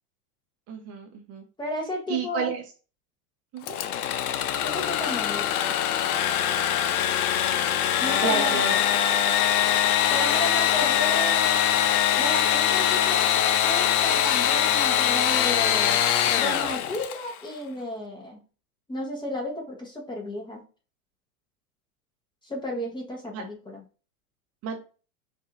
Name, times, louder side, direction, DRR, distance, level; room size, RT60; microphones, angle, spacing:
voice 1, 0.7-1.4 2.1-2.6 3.5-3.8 8.2-8.8 23.3-23.4 24.6-24.8, right 5 dB, 35° right, 3 dB, 0.8 m, -31 dB
voice 2, 1.6-2.5 4.6-5.7 8.0-8.6 10.1-11.6 12.2-16.0 16.4-18.4 18.9-20.6 22.4-23.8, left 1 dB, 10° left, 1 dB, 1.0 m, -33 dB
Engine / Sawing, 3.6-17.3, left 10 dB, 75° left, 0.7 m, -23 dB
4.9 x 2.6 x 2.5 m, 0.35 s
hypercardioid pair, 120°, 45 cm